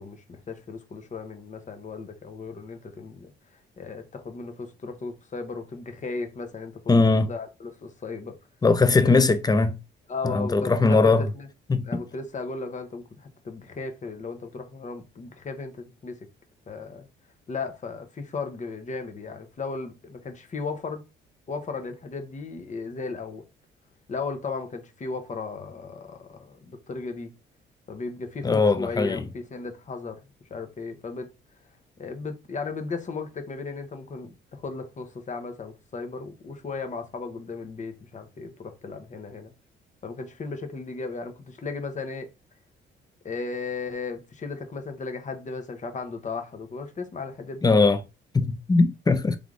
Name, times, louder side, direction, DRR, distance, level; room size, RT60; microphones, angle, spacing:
voice 1, 0.0-3.3 3.8-8.4 9.0-9.2 10.1-11.5 11.8-16.3 16.7-17.1 17.5-21.0 21.5-23.4 24.1-27.3 27.9-30.2 30.5-31.3 32.0-39.5 40.0-42.3 43.2-47.7, left 4 dB, 40° left, 1.0 m, -35 dB
voice 2, 6.9-7.3 8.6-9.8 10.2-11.2 11.7-12.0 28.4-29.3 47.6-48.0 48.3-49.4, left 3 dB, 20° left, 0.6 m, -20 dB
3.4 x 3.4 x 3.7 m
cardioid pair, 90°, 20 cm